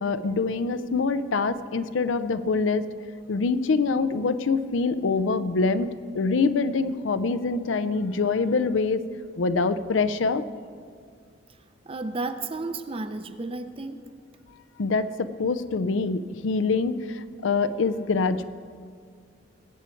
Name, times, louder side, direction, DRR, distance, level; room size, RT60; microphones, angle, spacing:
voice 1, 0.0-2.9 3.3-5.9 6.1-9.0 9.4-10.4 14.8-18.4, left 4 dB, 90° left, 13 dB, 0.5 m, -25 dB
voice 2, 11.9-14.0, right 3 dB, 30° right, 10 dB, 0.6 m, -32 dB
19.5 x 8.4 x 4.5 m, 2.1 s
head